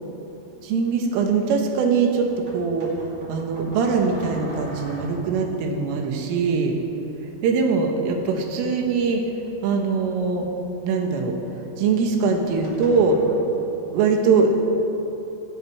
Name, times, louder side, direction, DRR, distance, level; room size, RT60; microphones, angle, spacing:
voice 1, 0.6-6.8 7.4-9.2 9.6-10.5 10.8-13.2 13.9-14.7, right 4 dB, 90° right, 2 dB, 4.2 m, -22 dB
sound 1, 2.2-5.5 7.9-10.6 12.1-13.3, equal, 30° right, 5.4 m, -42 dB
17.5 x 16.5 x 4.9 m, 2.9 s
omnidirectional pair, 5.6 m